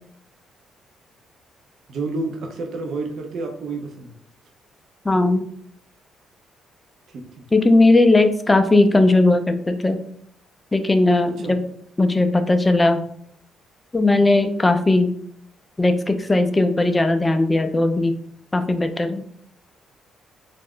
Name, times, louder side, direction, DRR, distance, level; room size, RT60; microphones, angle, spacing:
voice 1, 1.9-4.1 7.1-7.5 11.4-11.5, right 3 dB, 70° right, 3 dB, 0.6 m, -30 dB
voice 2, 5.1-5.5 7.5-10.0 10.7-11.6 12.0-13.0 13.9-15.1 15.8-18.1 18.5-19.2, left 2 dB, 20° left, 8 dB, 0.4 m, -17 dB
2.4 x 2.1 x 3.6 m, 0.65 s
cardioid pair, 90°, 0 cm